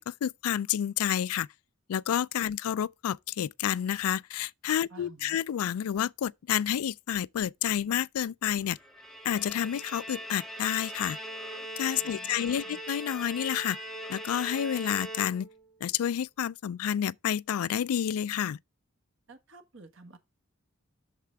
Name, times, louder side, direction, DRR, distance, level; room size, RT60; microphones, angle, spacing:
voice 1, 0.0-1.5 1.9-8.8 9.2-11.2 11.8-13.8 14.1-15.5 15.8-18.6, left 9 dB, 90° left, 0.3 m, -29 dB
voice 2, 4.9-5.4 12.0-12.8 19.3-20.2, right 3 dB, 60° right, 1.5 m, -52 dB
Bowed string instrument, 8.8-15.8, right 1 dB, ahead, 0.9 m, -41 dB
8.1 x 6.7 x 3.4 m
head